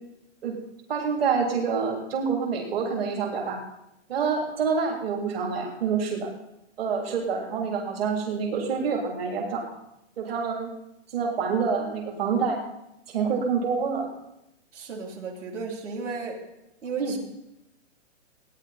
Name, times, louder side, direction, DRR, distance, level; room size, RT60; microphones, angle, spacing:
voice 1, 0.9-3.6 4.1-6.3 6.8-9.6 10.2-10.7 11.1-12.6 13.1-14.1 17.0-17.2, right 5 dB, 55° right, -1 dB, 3.3 m, -27 dB
voice 2, 14.7-16.4 16.8-17.2, right 4 dB, 80° right, -1 dB, 3.6 m, -34 dB
17.5 x 10.5 x 4.2 m, 0.85 s
hypercardioid pair, 175°, 36 cm